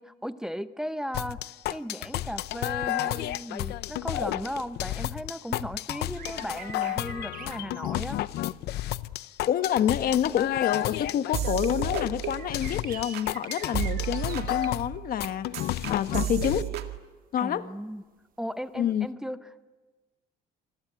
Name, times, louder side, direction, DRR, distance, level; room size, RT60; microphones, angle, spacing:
voice 1, 0.0-1.4 1.7-8.2 17.4-18.0 18.4-19.7, equal, 5° right, 0.9 m, -36 dB
sound 1, 1.1-16.6, left 14 dB, 75° left, 0.8 m, -32 dB
sound 2, 6.1-8.4 9.3-9.4 10.3-10.4 12.2-14.8 16.2-16.4 19.0-19.1, right 10 dB, 55° right, 1.1 m, -45 dB
voice 2, 9.5-16.7 17.3-17.7 18.8-19.1, left 10 dB, 60° left, 1.3 m, -28 dB
sound 3, 11.3-12.9 13.1-13.5 13.7-17.0, right 12 dB, 75° right, 2.0 m, -33 dB
27.5 x 21.5 x 9.1 m
cardioid pair, 110°, 17 cm